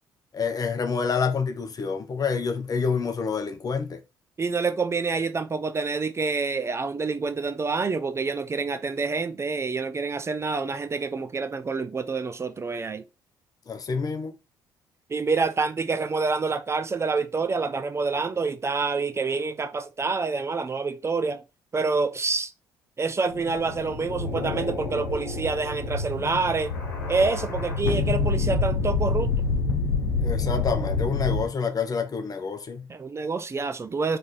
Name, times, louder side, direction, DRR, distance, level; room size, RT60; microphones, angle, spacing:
voice 1, 0.3-4.0 13.7-14.3 30.2-32.9, left 5 dB, 35° left, 0.8 m, -27 dB
voice 2, 4.4-13.0 15.1-21.4 21.7-22.5 23.0-26.7 27.1-29.3 32.9-34.2, right 4 dB, 25° right, 0.5 m, -27 dB
sound 1, 23.3-31.4, left 4 dB, 75° left, 0.9 m, -27 dB
3.6 x 3.3 x 4.1 m
figure-of-eight pair, 45°, 11 cm